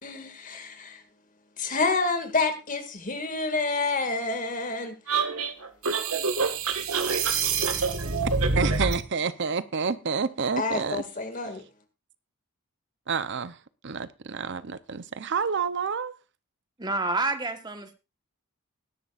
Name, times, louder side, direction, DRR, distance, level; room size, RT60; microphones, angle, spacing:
voice 1, 0.0-1.0 1.6-4.9 10.6-11.6, left 3 dB, 35° left, 2.1 m, -28 dB
sound 1, 5.1-9.0, right 4 dB, 75° right, 1.6 m, -26 dB
voice 2, 8.5-11.0 13.1-13.6 13.8-16.2, right 5 dB, 55° right, 0.7 m, -29 dB
voice 3, 16.8-17.9, right 2 dB, 20° right, 1.2 m, -28 dB
20.0 x 11.0 x 2.5 m
head